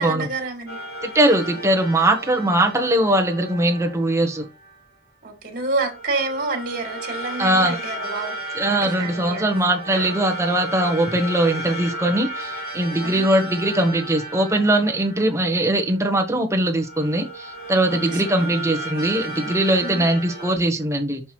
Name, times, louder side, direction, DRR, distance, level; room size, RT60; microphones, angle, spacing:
voice 1, 0.0-0.8 5.2-8.4 8.7-9.5 9.8-10.1 13.0-13.2 17.9-18.5 19.8-20.0, right 3 dB, 50° right, 2.4 m, -29 dB
sound 1, 0.7-4.8 5.8-16.2 16.7-20.6, right 1 dB, 60° left, 3.2 m, -34 dB
voice 2, 1.0-4.5 7.4-7.8 8.5-21.2, right 1 dB, 15° right, 1.4 m, -21 dB
6.2 x 5.2 x 4.6 m
head